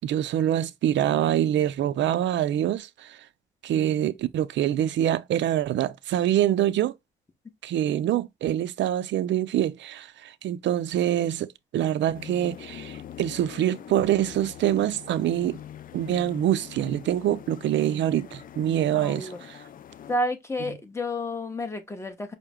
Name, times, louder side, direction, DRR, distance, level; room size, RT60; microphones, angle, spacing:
voice 1, 0.0-3.2 3.6-7.0 7.6-15.6 15.9-19.3, right 11 dB, 65° right, 0.5 m, -25 dB
sound 1, 12.1-20.2, left 10 dB, 45° left, 0.4 m, -43 dB
voice 2, 18.9-19.4 20.1-22.3, left 1 dB, 15° left, 1.1 m, -30 dB
5.5 x 2.1 x 3.6 m
cardioid pair, 90°, 20 cm